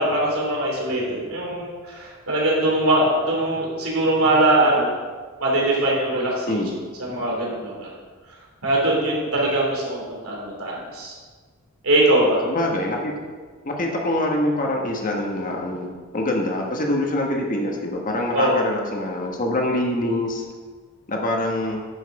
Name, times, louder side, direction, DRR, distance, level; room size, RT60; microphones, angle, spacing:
voice 1, 0.0-4.9 5.4-6.6 7.0-7.9 8.6-11.2 11.8-12.4 18.3-18.6, right 1 dB, 80° right, -3 dB, 3.0 m, -21 dB
voice 2, 12.4-13.1 13.6-20.4 21.1-21.8, left 1 dB, 40° left, 0 dB, 1.4 m, -25 dB
9.8 x 6.4 x 4.8 m, 1.5 s
head